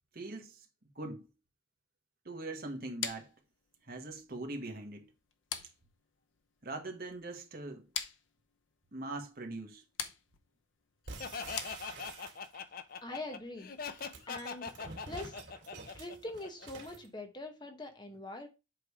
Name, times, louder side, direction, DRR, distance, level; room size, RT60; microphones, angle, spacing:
voice 1, 0.1-0.7 0.9-1.3 2.2-3.3 3.8-5.0 6.6-7.9 8.9-9.8, right 2 dB, 50° right, 1.5 m, -41 dB
sound 1, 3.0-12.4, left 8 dB, 80° left, 0.8 m, -45 dB
sound 2, 11.1-12.8 13.8-17.1, right 3 dB, 80° right, 2.4 m, -48 dB
Laughter, 11.2-16.9, left 5 dB, 50° left, 0.6 m, -42 dB
voice 2, 13.0-13.7 14.3-14.7 15.1-15.4 15.9-18.5, left 2 dB, 25° left, 0.9 m, -43 dB
7.8 x 3.4 x 4.8 m
head